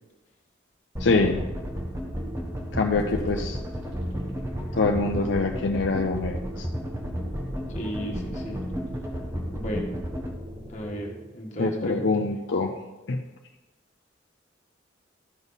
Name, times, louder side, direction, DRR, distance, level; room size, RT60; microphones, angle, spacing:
voice 1, 1.0-1.4 2.7-3.6 4.8-6.7 11.6-12.7 13.1-13.2, left 3 dB, 70° left, 2 dB, 0.6 m, -24 dB
sound 1, 1.0-10.3, equal, 15° right, 0.8 m, -33 dB
sound 2, 1.1-11.3, equal, 65° right, 2.4 m, -43 dB
sound 3, 2.9-10.9, equal, 85° right, 3.6 m, -46 dB
voice 2, 7.7-8.6 9.5-9.9 10.7-12.1, equal, 35° left, -1 dB, 1.6 m, -33 dB
13.0 x 5.4 x 4.0 m, 1.1 s
head